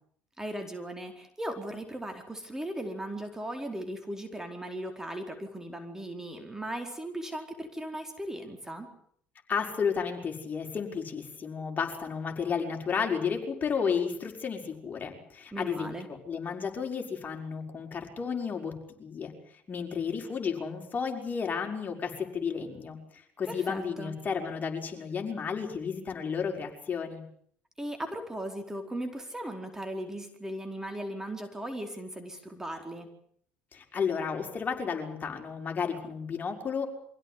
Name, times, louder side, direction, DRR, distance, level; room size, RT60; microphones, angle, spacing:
voice 1, 0.4-8.9 15.5-16.1 23.5-24.2 27.8-33.1, right 1 dB, 10° right, 5 dB, 4.5 m, -37 dB
voice 2, 9.5-18.7 19.0-19.3 19.7-27.2 33.7-36.9, left 6 dB, 35° left, 2 dB, 6.0 m, -32 dB
25.0 x 16.5 x 9.7 m, 0.65 s
hypercardioid pair, 65°, 5 cm